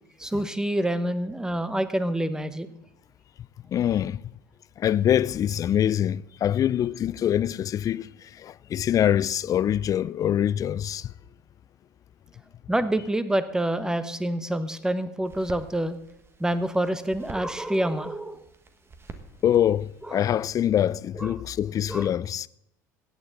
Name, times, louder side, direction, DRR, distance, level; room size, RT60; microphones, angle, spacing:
voice 1, 0.2-2.7 12.7-16.0 16.4-18.4 20.1-20.2 21.2-21.4 21.9-22.1, right 1 dB, 5° right, 1.0 m, -27 dB
voice 2, 3.7-4.2 4.8-8.1 8.4-11.1 19.4-22.5, left 10 dB, 35° left, 0.4 m, -24 dB
sound 1, 15.3-20.7, right 4 dB, 25° right, 1.5 m, -48 dB
16.0 x 8.9 x 4.0 m
hypercardioid pair, 75°, 10 cm